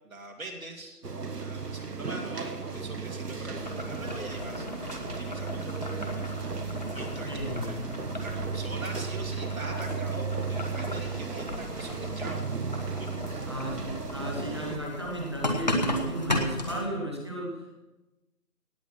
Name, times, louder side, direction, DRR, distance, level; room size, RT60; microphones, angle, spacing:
voice 1, 0.0-1.0 1.4-4.7 5.2-6.3 6.9-7.8 8.2-12.4 13.0-13.1, right 2 dB, 60° right, 1 dB, 2.5 m, -43 dB
sound 1, 1.0-14.8, right 5 dB, 80° right, 1.6 m, -35 dB
Boiling, 3.6-16.8, left 1 dB, 30° left, 1.1 m, -36 dB
voice 2, 7.2-7.9 13.4-17.7, right 1 dB, 15° right, -1 dB, 1.2 m, -34 dB
17.5 x 8.3 x 5.7 m, 1.1 s
figure-of-eight pair, 170°, 46 cm